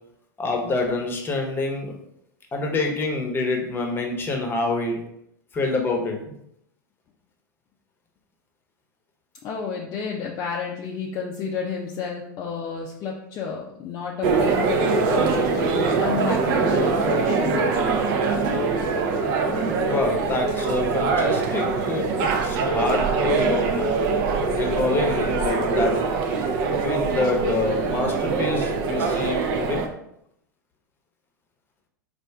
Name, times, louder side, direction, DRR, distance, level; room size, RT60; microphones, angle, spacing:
voice 1, 0.4-1.9 2.5-5.0 5.5-6.2 19.5-23.9 24.5-25.9 26.7-29.8, left 3 dB, 20° left, 2 dB, 0.9 m, -26 dB
voice 2, 9.4-17.7 19.9-20.1, left 5 dB, 35° left, -1 dB, 0.5 m, -31 dB
sound 1, 14.2-29.9, right 4 dB, 45° right, 0.6 m, -23 dB
4.3 x 2.5 x 3.4 m, 0.76 s
hypercardioid pair, 90°, 11 cm